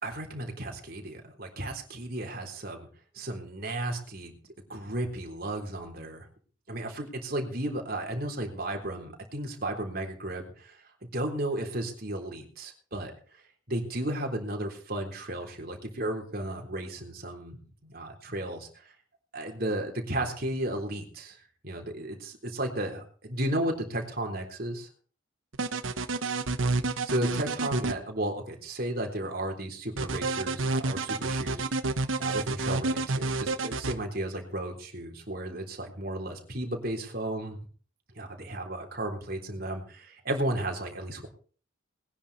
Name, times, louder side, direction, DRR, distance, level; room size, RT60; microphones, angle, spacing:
voice 1, 0.0-2.9 3.1-4.3 4.7-6.3 6.7-10.8 11.1-13.1 13.7-17.6 17.8-18.8 19.3-21.4 21.6-24.9 27.0-31.6 32.2-37.6 38.2-41.3, right 1 dB, 45° right, 2 dB, 3.7 m, -34 dB
sound 1, 25.5-27.9 30.0-33.9, right 3 dB, 75° right, 1.1 m, -29 dB
20.5 x 10.5 x 4.2 m, 0.42 s
head